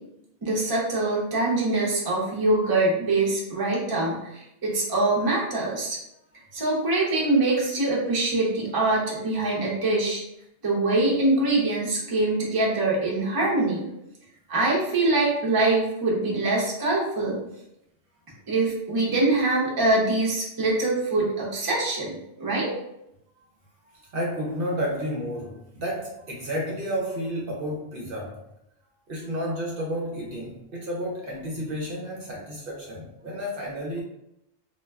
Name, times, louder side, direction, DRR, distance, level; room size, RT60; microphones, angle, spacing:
voice 1, 0.4-6.0 6.5-10.2 10.6-13.9 14.5-17.4 18.5-22.7, right 2 dB, 25° right, -4 dB, 0.5 m, -24 dB
voice 2, 24.1-28.4 29.1-34.0, equal, 60° right, -2 dB, 0.7 m, -31 dB
2.2 x 2.1 x 3.4 m, 0.84 s
omnidirectional pair, 1.1 m